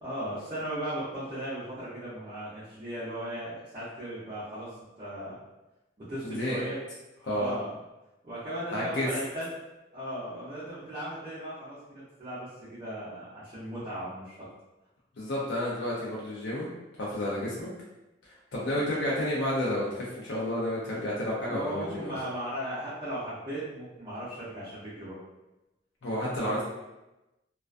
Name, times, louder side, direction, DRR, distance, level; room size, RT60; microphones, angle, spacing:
voice 1, 0.0-4.7 5.0-5.3 6.0-6.8 7.3-7.7 8.2-9.5 9.9-14.5 21.5-25.2, equal, 25° right, -11 dB, 0.6 m, -37 dB
voice 2, 6.3-6.6 7.2-7.5 8.7-9.1 15.2-16.7 17.0-17.7 18.5-22.1 26.0-26.6, left 1 dB, 65° left, -6 dB, 0.5 m, -30 dB
2.3 x 2.2 x 2.4 m, 1.0 s
head